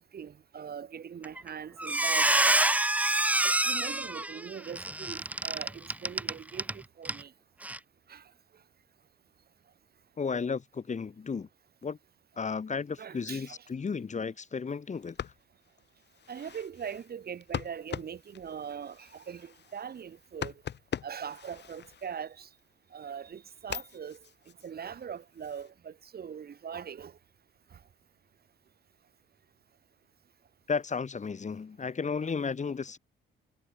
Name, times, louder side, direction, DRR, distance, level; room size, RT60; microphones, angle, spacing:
voice 1, 0.1-2.3 3.4-7.3 8.1-8.2 13.0-13.6 16.3-20.5 21.0-22.5 22.9-24.2 24.6-27.1 32.2-32.3, right 7 dB, 50° right, 5.4 m, -41 dB
Squeak, 1.2-1.5 1.8-6.7 7.0-7.2 7.6-7.8, right 1 dB, 5° right, 0.6 m, -27 dB
voice 2, 10.2-11.5 11.8-12.0 12.4-15.3 30.7-33.0, left 5 dB, 35° left, 4.7 m, -33 dB
sound 1, 14.9-22.6 23.1-25.7, left 9 dB, 60° left, 4.1 m, -43 dB
cardioid pair, 90°, 20 cm